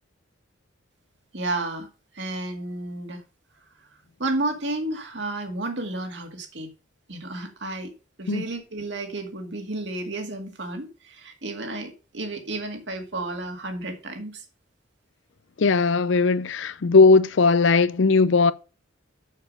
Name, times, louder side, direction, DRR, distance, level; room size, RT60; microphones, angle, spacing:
voice 1, 1.3-1.9 2.1-3.2 3.8-3.9 4.2-6.7 7.1-7.9 8.2-14.4, right 2 dB, 60° right, 2.0 m, -32 dB
voice 2, 15.6-18.5, left 4 dB, 70° left, 0.5 m, -18 dB
7.0 x 6.6 x 5.2 m
head